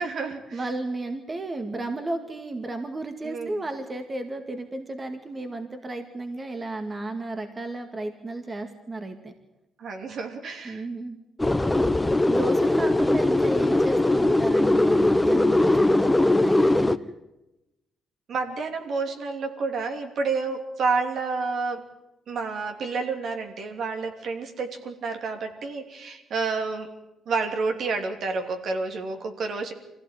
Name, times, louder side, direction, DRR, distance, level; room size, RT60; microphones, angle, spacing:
voice 1, 0.0-0.6 3.2-3.6 9.8-10.8 18.3-21.9 22.3-26.9 27.3-29.7, right 4 dB, 65° right, 5 dB, 3.0 m, -29 dB
voice 2, 0.5-9.3 10.6-11.2 12.3-16.9, right 2 dB, 30° right, 7 dB, 2.1 m, -33 dB
sound 1, 11.4-17.0, left 2 dB, 10° left, 0.9 m, -20 dB
23.5 x 16.0 x 9.2 m, 0.96 s
cardioid pair, 90°, 0 cm